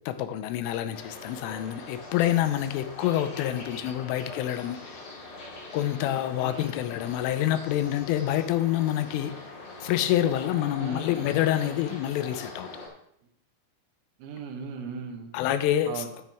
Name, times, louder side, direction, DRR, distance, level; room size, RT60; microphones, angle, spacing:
voice 1, 0.1-5.0 5.7-9.4 9.8-12.7 15.3-16.1, left 12 dB, 85° left, 11 dB, 3.2 m, -27 dB
sound 1, 0.9-12.9, left 2 dB, 45° left, 3.7 m, -42 dB
voice 2, 6.4-6.8 10.8-11.2 14.2-15.3 15.9-16.1, right 6 dB, 90° right, 4 dB, 4.0 m, -38 dB
11.0 x 10.5 x 3.5 m, 0.71 s
omnidirectional pair, 5.7 m